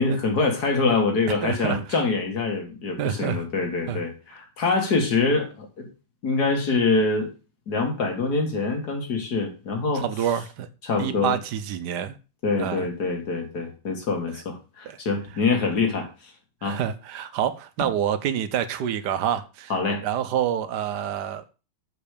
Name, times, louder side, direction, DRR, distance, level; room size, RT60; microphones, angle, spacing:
voice 1, 0.0-5.9 6.2-7.3 7.7-10.0 10.8-11.4 12.4-16.1 16.6-16.8 19.7-20.0, left 3 dB, 50° left, 4 dB, 2.4 m, -25 dB
voice 2, 1.4-1.8 3.0-3.4 3.9-4.0 9.9-10.7 11.0-12.1 12.6-12.9 14.8-15.0 16.6-21.4, right 9 dB, 65° right, 12 dB, 1.2 m, -27 dB
7.0 x 5.4 x 6.6 m, 0.33 s
omnidirectional pair, 2.3 m